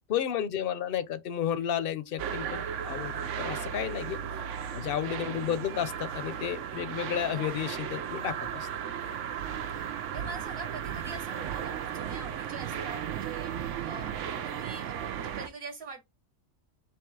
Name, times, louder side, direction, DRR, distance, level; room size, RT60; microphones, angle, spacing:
voice 1, 0.1-4.2 4.7-8.7, left 9 dB, 60° left, 0.7 m, -32 dB
sound 1, 2.2-15.5, right 8 dB, 85° right, 1.0 m, -35 dB
voice 2, 3.4-4.2 8.8-16.0, right 4 dB, 55° right, 1.1 m, -45 dB
3.6 x 2.9 x 4.6 m
omnidirectional pair, 1.2 m